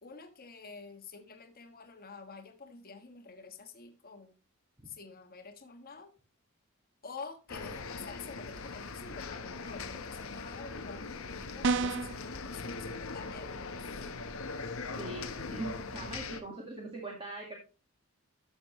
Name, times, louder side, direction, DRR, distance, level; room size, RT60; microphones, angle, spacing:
voice 1, 0.0-4.3 4.8-6.1 7.0-13.8, left 4 dB, 45° left, 1.4 m, -48 dB
sound 1, 7.5-16.4, left 4 dB, 65° left, 1.1 m, -41 dB
sound 2, 11.6-12.2, right 4 dB, 55° right, 0.5 m, -28 dB
voice 2, 14.9-17.6, right 2 dB, 25° right, 1.9 m, -41 dB
12.0 x 7.2 x 3.1 m
head